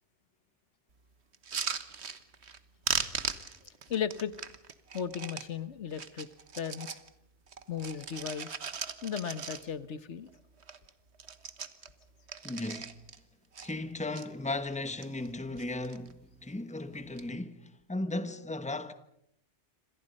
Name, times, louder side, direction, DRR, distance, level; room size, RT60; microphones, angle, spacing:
sound 1, 1.3-2.6 2.8-5.5 5.9-7.1 7.5-9.9 10.3-10.4 10.6-10.9 11.1-13.2 13.5-14.2 14.8-15.3 15.6-16.1 16.9-17.2, right 6 dB, 65° right, 1.6 m, -38 dB
voice 1, 3.6-4.3 4.9-6.3 6.6-7.0 7.7-8.6 9.0-10.3, left 8 dB, 75° left, 1.5 m, -36 dB
voice 2, 12.4-12.9 13.6-18.9, left 2 dB, 5° left, 1.2 m, -36 dB
27.5 x 26.5 x 5.4 m
omnidirectional pair, 1.2 m